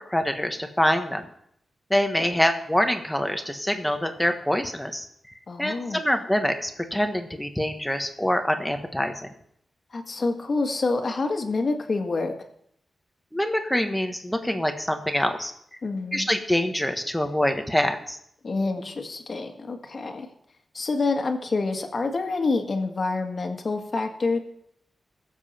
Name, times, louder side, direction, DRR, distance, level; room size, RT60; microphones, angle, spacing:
voice 1, 0.1-1.2 1.9-5.1 5.6-9.3 13.3-15.5 16.1-18.2, left 1 dB, 5° left, 6 dB, 1.4 m, -25 dB
voice 2, 5.5-6.0 9.9-12.3 15.8-16.3 18.4-20.3 20.7-24.4, left 3 dB, 45° left, 4 dB, 1.8 m, -27 dB
21.5 x 7.5 x 4.4 m, 0.69 s
wide cardioid pair, 110°, 0 cm